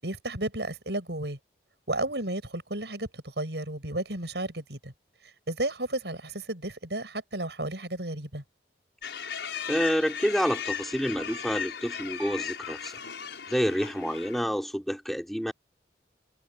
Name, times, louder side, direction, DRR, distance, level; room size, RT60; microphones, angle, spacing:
voice 1, 0.0-1.4 1.9-4.9 5.5-8.4, right 1 dB, 75° right, 7.9 m, -33 dB
sound 1, 9.0-14.4, left 7 dB, 90° left, 6.1 m, -36 dB
voice 2, 9.7-12.9 13.5-15.5, equal, ahead, 4.4 m, -28 dB
head